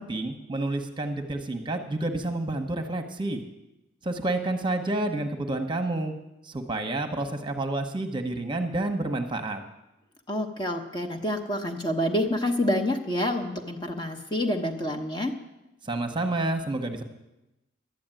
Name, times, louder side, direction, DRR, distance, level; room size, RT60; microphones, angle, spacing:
voice 1, 0.0-3.4 4.0-6.1 6.4-9.6 15.8-17.0, right 2 dB, 25° right, 5 dB, 1.0 m, -29 dB
voice 2, 10.3-15.4, left 1 dB, 25° left, 5 dB, 1.0 m, -28 dB
12.0 x 8.6 x 9.0 m, 0.96 s
head